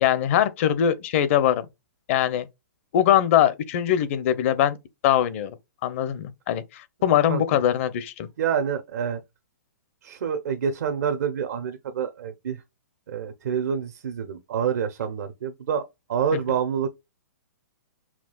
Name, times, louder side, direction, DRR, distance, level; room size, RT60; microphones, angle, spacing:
voice 1, 0.0-1.7 2.1-2.5 2.9-4.8 5.0-5.6 5.8-8.3, left 10 dB, 50° left, 0.7 m, -22 dB
voice 2, 7.3-7.6 8.4-9.2 10.0-12.6 13.1-15.8 16.1-16.9, right 7 dB, 60° right, 0.7 m, -27 dB
5.8 x 2.3 x 2.3 m
hypercardioid pair, 120°, 9 cm